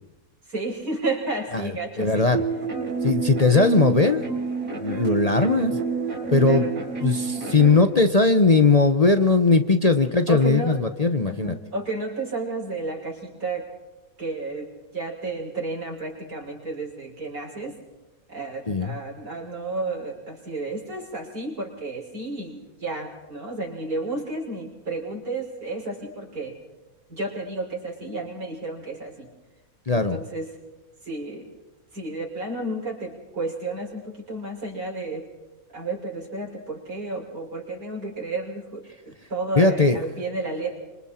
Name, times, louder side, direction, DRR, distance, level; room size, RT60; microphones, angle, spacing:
voice 1, 0.5-2.3 3.5-3.7 6.4-6.7 10.3-10.8 11.3-13.6 14.2-14.7 14.9-17.8 18.3-26.5 27.1-29.3 29.9-30.5 31.0-31.5 31.9-35.3 35.7-40.8, right 2 dB, 80° right, -2 dB, 6.3 m, -32 dB
voice 2, 2.0-2.4 3.0-4.2 4.8-5.8 6.3-6.6 7.0-11.6 18.7-18.9 29.9-30.2 39.6-40.0, left 3 dB, 30° left, 7 dB, 0.9 m, -19 dB
sound 1, 2.3-7.8, right 5 dB, 65° right, 6.4 m, -28 dB
26.5 x 25.5 x 4.4 m, 1.1 s
omnidirectional pair, 1.5 m